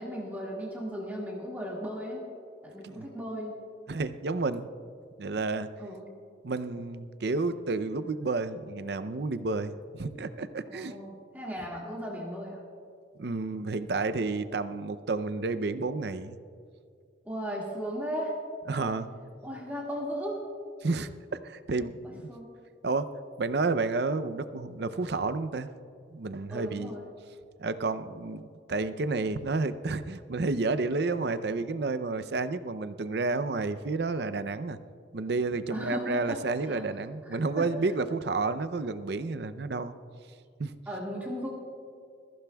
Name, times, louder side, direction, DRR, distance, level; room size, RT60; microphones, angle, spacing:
voice 1, 0.0-2.3 2.6-3.6 5.8-6.1 10.7-12.6 17.2-18.4 18.8-19.0 19.4-20.4 22.0-22.5 26.5-27.0 35.7-36.8 37.2-37.7 40.9-41.5, equal, 10° right, -4 dB, 1.9 m, -36 dB
voice 2, 3.9-4.7 5.2-5.7 6.4-11.0 13.2-16.4 18.7-19.1 20.8-22.2 22.8-25.7 26.1-26.9 27.6-28.4 28.7-34.8 35.1-40.0 40.6-40.8, right 3 dB, 60° right, 12 dB, 0.5 m, -31 dB
21.0 x 15.0 x 2.3 m, 2.3 s
head